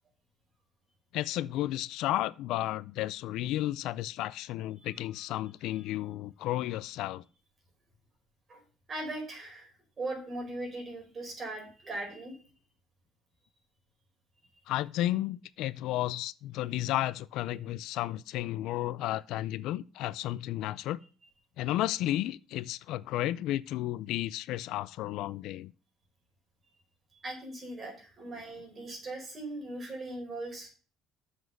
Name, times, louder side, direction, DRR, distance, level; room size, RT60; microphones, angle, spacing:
voice 1, 1.1-7.2 14.7-21.0 21.6-25.7, left 14 dB, 70° left, 0.4 m, -33 dB
voice 2, 8.9-9.7 10.0-12.4 27.2-30.7, right 2 dB, 25° right, 4.4 m, -39 dB
7.1 x 6.2 x 7.7 m
cardioid pair, 155°, 0 cm